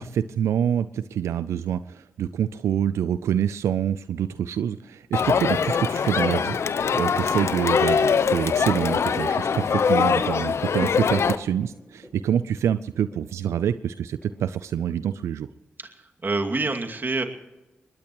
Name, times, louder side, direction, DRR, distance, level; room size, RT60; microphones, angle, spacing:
voice 1, 0.0-6.6 6.9-15.5, right 9 dB, 90° right, 13 dB, 0.4 m, -26 dB
sound 1, 4.2-15.0, left 1 dB, 15° left, 5.4 m, -48 dB
Crowd, 5.1-11.4, left 6 dB, 70° left, 0.8 m, -23 dB
voice 2, 15.8-17.2, right 3 dB, 45° right, 5 dB, 2.4 m, -27 dB
22.0 x 19.0 x 3.1 m, 1.1 s
supercardioid pair, 45°, 5 cm